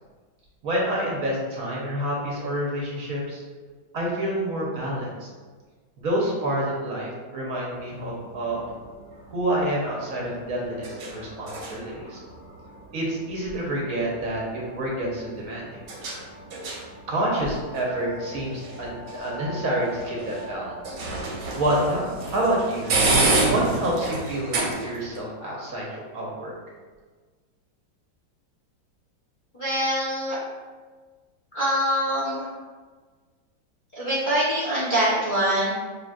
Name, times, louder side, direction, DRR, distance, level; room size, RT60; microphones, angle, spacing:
voice 1, 0.6-3.4 3.9-5.3 6.0-8.6 9.3-12.2 12.9-15.8 17.1-21.0 21.5-22.0 22.3-22.9 23.5-26.5, right 1 dB, 55° right, -3 dB, 1.2 m, -28 dB
sound 1, 7.7-25.2, right 2 dB, 90° right, 1.8 m, -31 dB
voice 2, 29.5-30.4 31.5-32.4 33.9-35.7, equal, 30° left, -9 dB, 1.0 m, -24 dB
6.8 x 2.9 x 2.4 m, 1.4 s
omnidirectional pair, 2.1 m